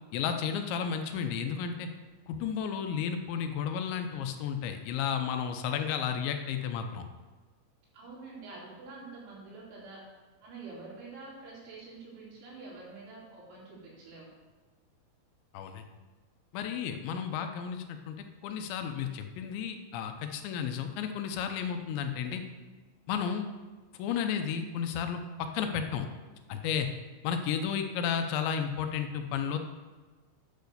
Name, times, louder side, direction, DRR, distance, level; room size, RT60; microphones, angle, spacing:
voice 1, 0.1-1.9 2.3-7.1 15.5-15.9 16.5-22.4 23.1-23.5 24.0-26.1 26.5-26.9 27.2-29.6, left 7 dB, 80° left, 6 dB, 2.9 m, -33 dB
voice 2, 7.9-10.0 10.4-14.3, right 3 dB, 90° right, -5 dB, 5.3 m, -47 dB
10.5 x 5.5 x 6.6 m, 1.3 s
omnidirectional pair, 5.3 m